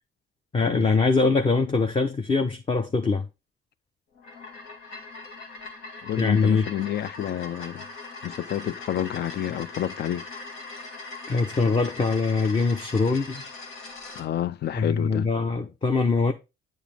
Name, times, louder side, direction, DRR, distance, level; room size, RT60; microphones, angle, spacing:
voice 1, 0.5-3.3 6.2-6.6 11.3-13.5 14.7-16.3, left 4 dB, 25° left, 0.8 m, -23 dB
sound 1, 4.1-14.3, left 3 dB, 85° left, 1.9 m, -40 dB
voice 2, 6.0-7.8 8.2-10.3 14.1-15.3, left 11 dB, 55° left, 0.5 m, -29 dB
9.2 x 4.8 x 3.4 m
cardioid pair, 90°, 20 cm